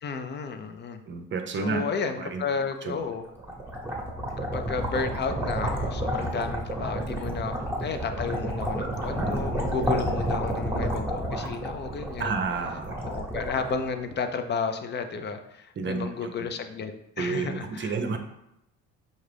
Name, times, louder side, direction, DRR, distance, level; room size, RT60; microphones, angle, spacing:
voice 1, 0.0-1.0 1.5-3.2 4.5-18.2, left 5 dB, 35° left, 8 dB, 0.5 m, -32 dB
voice 2, 1.1-1.8 2.2-2.4 2.8-3.0 12.2-13.1 15.8-16.3 17.2-18.2, right 4 dB, 40° right, 6 dB, 0.6 m, -30 dB
sound 1, 3.1-14.3, right 1 dB, 5° right, 1.0 m, -30 dB
5.3 x 2.4 x 3.3 m, 0.83 s
supercardioid pair, 85°, 32 cm